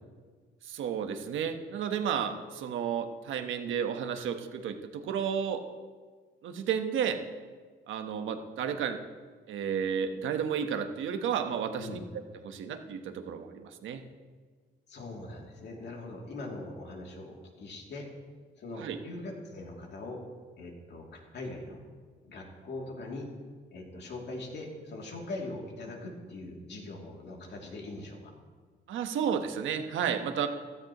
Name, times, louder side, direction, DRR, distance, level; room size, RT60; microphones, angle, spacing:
voice 1, 0.6-5.6 6.4-7.2 7.9-9.0 9.5-12.0 12.4-14.0 18.8-19.0 28.9-30.5, right 7 dB, 80° right, 7 dB, 1.1 m, -32 dB
voice 2, 14.9-18.1 18.6-20.2 20.6-21.8 22.2-23.3 23.7-28.2, left 2 dB, 60° left, -1 dB, 2.7 m, -41 dB
16.0 x 13.5 x 3.0 m, 1.5 s
cardioid pair, 90°, 20 cm